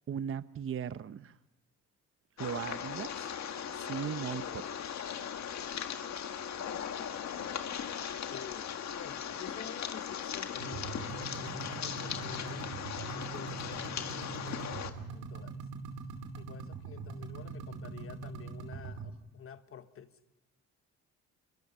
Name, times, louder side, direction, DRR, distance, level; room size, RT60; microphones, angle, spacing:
voice 1, 0.1-1.4 2.4-3.3 3.8-4.7, right 8 dB, 45° right, 14 dB, 0.8 m, -38 dB
sound 1, 2.4-14.9, left 8 dB, 65° left, 1.7 m, -38 dB
voice 2, 8.3-12.7 13.1-15.6 16.4-20.2, left 7 dB, 45° left, 10 dB, 1.5 m, -50 dB
sound 2, 10.6-19.1, right 5 dB, 85° right, 2.7 m, -42 dB
26.0 x 23.0 x 5.6 m, 1.0 s
cardioid pair, 90°, 30 cm